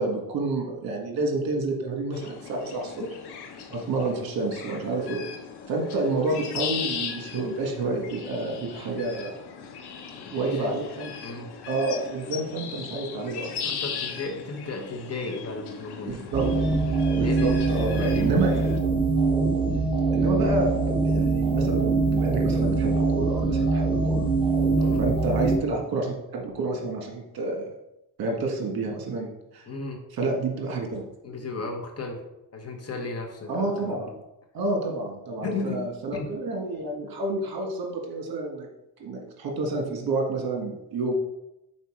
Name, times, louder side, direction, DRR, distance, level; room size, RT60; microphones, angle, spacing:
voice 1, 0.0-2.9 3.7-5.2 5.7-9.3 10.3-11.1 11.7-13.7 16.1-16.5 17.1-18.7 19.3-19.5 20.1-24.3 25.0-27.7 28.2-29.6 30.1-31.0 33.5-34.1 34.5-38.7 39.0-41.1, right 2 dB, 60° right, 1 dB, 1.7 m, -29 dB
sound 1, 2.1-18.8, left 7 dB, 70° left, 1.0 m, -38 dB
voice 2, 10.1-10.8 11.2-11.5 13.6-16.3 17.1-18.3 24.8-25.0 29.7-30.0 31.2-32.2 32.5-34.1 35.4-35.8 36.1-36.3, left 3 dB, 35° left, 2 dB, 1.2 m, -35 dB
sound 2, 16.3-25.6, right 3 dB, 10° right, 1.2 m, -23 dB
5.5 x 4.4 x 4.9 m, 0.89 s
cardioid pair, 110°, 40 cm